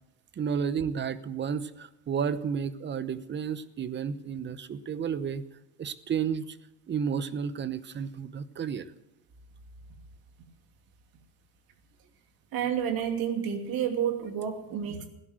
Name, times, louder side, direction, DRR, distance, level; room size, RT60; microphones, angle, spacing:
voice 1, 0.4-5.4 5.8-6.6 6.9-8.9, right 7 dB, 25° right, 15 dB, 0.9 m, -32 dB
voice 2, 12.5-15.1, right 8 dB, 50° right, 6 dB, 2.6 m, -30 dB
16.5 x 11.0 x 7.8 m, 0.89 s
supercardioid pair, 110°, 47 cm